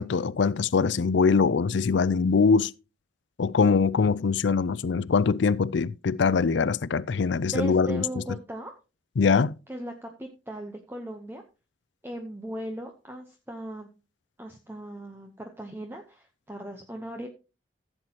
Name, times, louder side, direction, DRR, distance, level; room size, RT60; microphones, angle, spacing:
voice 1, 0.0-2.7 3.4-8.0 9.2-9.5, left 5 dB, 65° left, 0.4 m, -23 dB
voice 2, 7.5-8.7 9.7-11.4 12.0-13.9 14.4-17.3, right 1 dB, 10° right, 0.8 m, -38 dB
15.0 x 7.8 x 2.9 m
head